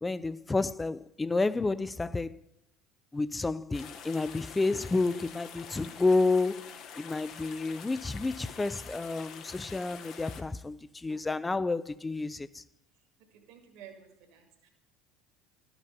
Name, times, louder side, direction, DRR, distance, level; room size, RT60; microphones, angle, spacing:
voice 1, 0.0-2.4 3.1-6.7 7.0-12.6, left 3 dB, 15° left, 0.4 m, -30 dB
sound 1, 3.7-10.4, left 7 dB, 50° left, 1.0 m, -46 dB
voice 2, 13.5-14.7, right 8 dB, 60° right, 2.0 m, -52 dB
12.5 x 6.0 x 6.8 m
hypercardioid pair, 65°, 0 cm